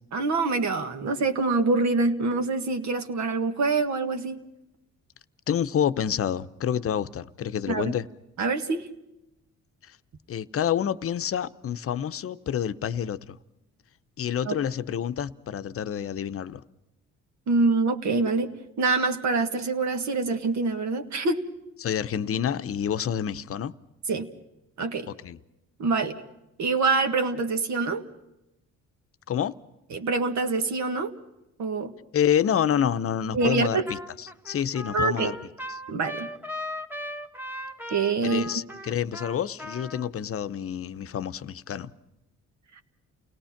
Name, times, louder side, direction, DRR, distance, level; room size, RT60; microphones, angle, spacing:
voice 1, 0.1-4.4 7.7-8.0 8.4-8.9 14.5-14.6 17.5-18.5 18.8-21.4 24.1-24.3 24.8-25.1 25.8-26.1 26.6-28.0 29.9-31.1 31.6-31.9 33.3-33.8 34.9-35.3 35.9-36.3 37.9-38.6, right 3 dB, 70° right, 6 dB, 1.7 m, -25 dB
voice 2, 5.5-8.0 10.3-13.4 14.2-16.6 21.8-23.7 25.1-25.4 29.3-29.5 32.1-35.4 35.7-35.8 38.2-41.9, left 9 dB, 50° left, 13 dB, 0.8 m, -28 dB
Trumpet, 33.4-33.6 33.9-40.1, left 1 dB, 5° right, 1.4 m, -38 dB
29.5 x 18.0 x 5.8 m, 0.90 s
cardioid pair, 90°, 30 cm